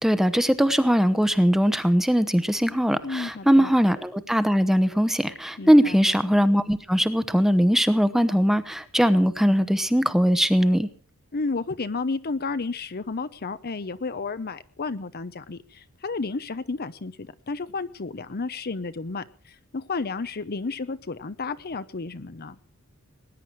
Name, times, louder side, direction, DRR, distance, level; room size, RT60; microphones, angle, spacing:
voice 1, 0.0-10.9, equal, ahead, 11 dB, 0.9 m, -20 dB
voice 2, 3.0-3.7 5.6-6.0 11.3-22.6, left 4 dB, 45° left, 13 dB, 0.8 m, -32 dB
19.5 x 10.5 x 6.1 m, 0.40 s
head